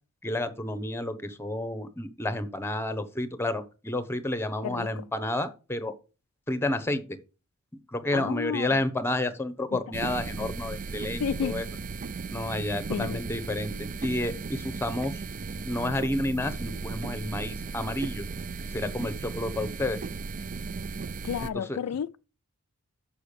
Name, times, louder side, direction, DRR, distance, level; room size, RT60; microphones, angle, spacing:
voice 1, 0.2-5.9 6.5-7.2 7.9-11.6 12.3-15.2 15.6-18.2 18.7-20.0 21.5-21.8, left 1 dB, 10° left, 0.9 m, -30 dB
voice 2, 4.6-5.0 8.1-8.8 9.7-9.8 11.2-11.6 12.9-13.2 21.2-22.2, left 7 dB, 75° left, 0.3 m, -32 dB
sound 1, 9.9-21.5, right 4 dB, 35° right, 0.4 m, -36 dB
7.0 x 5.5 x 6.6 m
head